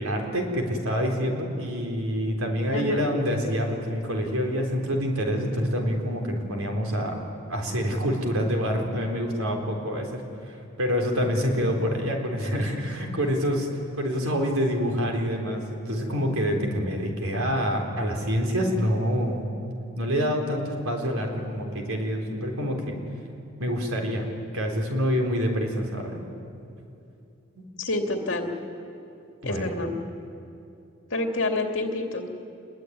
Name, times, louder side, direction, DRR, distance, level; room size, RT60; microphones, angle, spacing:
voice 1, 0.0-7.2 7.5-10.2 10.5-13.7 14.0-19.4 20.0-23.0 23.6-24.3 24.5-26.2 27.6-27.7 29.4-29.8, equal, 85° right, 2 dB, 4.0 m, -26 dB
voice 2, 2.7-3.1 27.8-28.5 29.4-29.9 31.1-32.3, left 2 dB, 60° left, 3 dB, 2.7 m, -28 dB
26.5 x 21.5 x 9.5 m, 2.6 s
head